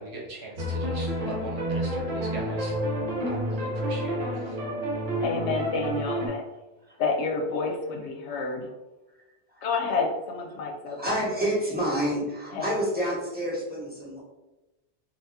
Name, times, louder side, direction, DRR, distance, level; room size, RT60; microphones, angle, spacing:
voice 1, 0.0-2.8 3.3-4.6, right 2 dB, 70° right, -2 dB, 1.0 m, -40 dB
sound 1, 0.6-6.3, equal, 50° right, 0.8 m, -29 dB
voice 2, 5.2-6.4 7.0-8.7 9.6-11.0 12.5-12.7, left 4 dB, 80° left, 3 dB, 0.9 m, -29 dB
voice 3, 10.8-14.2, equal, 10° right, -8 dB, 1.1 m, -29 dB
2.7 x 2.4 x 3.4 m, 1.0 s
omnidirectional pair, 1.2 m